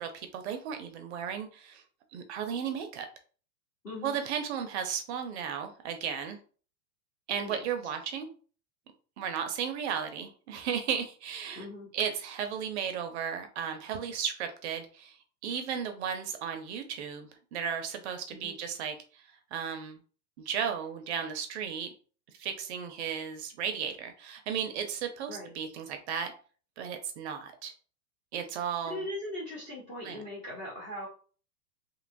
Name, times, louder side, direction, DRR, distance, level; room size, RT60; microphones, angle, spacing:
voice 1, 0.0-1.8 2.1-3.1 4.0-6.4 7.3-8.3 9.2-11.7 11.9-19.2 19.5-20.0 20.4-21.9 22.4-26.3 26.8-27.7 28.3-29.0 30.0-30.2, right 7 dB, 45° right, 6 dB, 0.4 m, -35 dB
voice 2, 3.8-4.2 7.4-7.6 11.6-11.9 18.3-18.6 25.3-25.5 28.8-31.1, left 1 dB, 15° left, -3 dB, 0.4 m, -39 dB
2.8 x 2.2 x 2.5 m, 0.40 s
hypercardioid pair, 135°, 49 cm